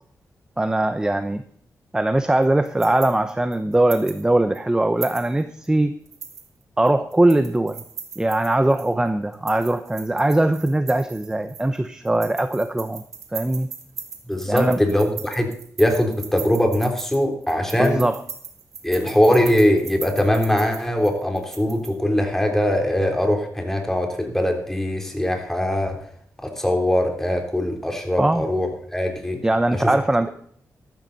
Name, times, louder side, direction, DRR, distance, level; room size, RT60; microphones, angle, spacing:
voice 1, 0.6-1.4 1.9-5.9 6.8-7.8 8.2-13.0 13.3-13.7 14.5-14.8 17.8-18.2 28.2-28.5 29.4-30.3, right 1 dB, 10° right, 10 dB, 0.8 m, -21 dB
sound 1, 2.4-4.2 4.5-4.6 5.0-5.7 6.1-8.9 9.3-11.8 12.1-21.9, right 6 dB, 60° right, 2.5 m, -38 dB
voice 2, 14.3-15.5 15.8-18.0 18.8-26.0 26.4-29.4 29.7-29.9, left 1 dB, 5° left, 3 dB, 3.4 m, -21 dB
14.0 x 12.0 x 4.1 m, 0.62 s
cardioid pair, 100°, 6 cm